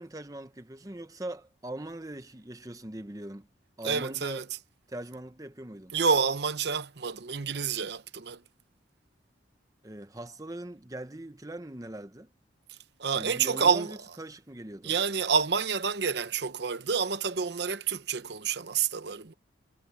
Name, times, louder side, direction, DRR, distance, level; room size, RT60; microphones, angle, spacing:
voice 1, 0.0-3.5 3.8-4.4 4.9-5.9 9.8-12.3 13.1-14.9, right 1 dB, 20° right, 0.9 m, -41 dB
voice 2, 3.8-4.5 5.9-8.4 12.7-13.9 14.8-19.3, right 6 dB, 60° right, 0.8 m, -28 dB
head